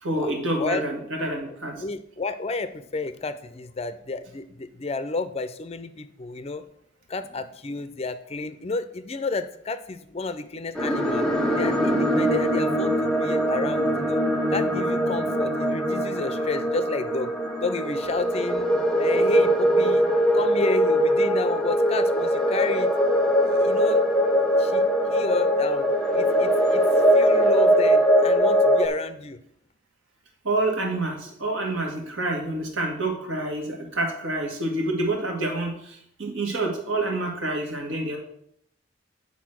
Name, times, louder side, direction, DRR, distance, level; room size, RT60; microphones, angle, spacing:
voice 1, 0.0-1.8 30.4-38.2, right 2 dB, 80° right, 1 dB, 2.0 m, -27 dB
voice 2, 1.8-6.6 7.1-11.3 11.5-14.2 14.5-17.3 17.6-18.7 19.0-20.1 20.3-22.9 23.6-24.0 24.6-25.9 26.1-26.8 27.1-29.4, left 3 dB, 30° left, 12 dB, 0.4 m, -31 dB
sound 1, 10.7-28.9, equal, 5° left, 0.8 m, -21 dB
9.4 x 4.2 x 6.1 m, 0.71 s
head